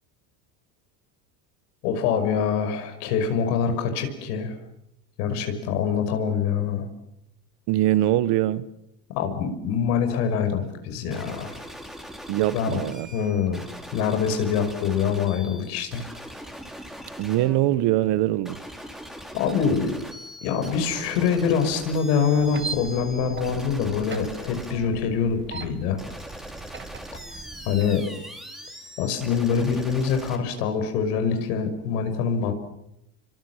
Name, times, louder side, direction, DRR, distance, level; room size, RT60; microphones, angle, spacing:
voice 1, 1.8-4.6 5.2-6.9 9.1-11.5 12.5-12.8 13.1-13.6 13.9-16.0 19.3-19.9 20.4-26.0 27.7-28.0 29.0-32.5, left 6 dB, 75° left, 6.0 m, -24 dB
voice 2, 7.7-8.7 12.3-13.1 17.2-18.6, right 14 dB, 55° right, 1.6 m, -22 dB
sound 1, 11.1-30.4, equal, ahead, 4.6 m, -41 dB
sound 2, 22.4-27.9, right 5 dB, 25° right, 2.1 m, -39 dB
28.0 x 25.0 x 7.6 m
supercardioid pair, 100°, 48 cm